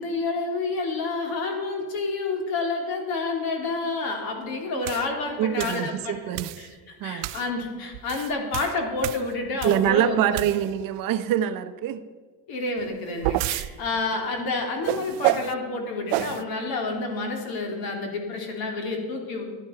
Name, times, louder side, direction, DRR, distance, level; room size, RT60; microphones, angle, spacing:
voice 1, 0.0-6.1 6.6-6.7 7.0-10.2 12.5-19.4, left 3 dB, 60° left, 3.3 m, -29 dB
sound 1, 4.8-5.1 5.6-5.9 6.3-6.7 7.2-7.5 7.9-9.9 10.3-10.9 12.8-13.7 14.8-15.5 16.1-16.4, right 16 dB, 85° right, 0.7 m, -29 dB
voice 2, 5.4-6.5 7.0-7.3 9.6-12.0, right 11 dB, 55° right, 0.9 m, -25 dB
14.5 x 11.0 x 5.8 m
cardioid pair, 150°, 41 cm